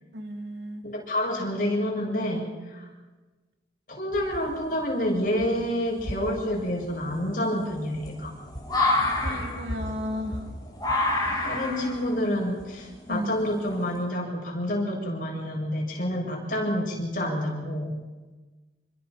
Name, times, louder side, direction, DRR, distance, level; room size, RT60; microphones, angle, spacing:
voice 1, 0.1-0.9 9.2-10.4 13.1-13.3, equal, 70° right, 5 dB, 3.1 m, -33 dB
voice 2, 0.8-2.9 3.9-8.3 11.4-17.9, equal, 50° left, -1 dB, 7.9 m, -28 dB
sound 1, 4.1-4.7 5.4-5.5 6.0-14.0, left 2 dB, 20° left, 5.0 m, -29 dB
27.5 x 23.5 x 5.9 m, 1.2 s
head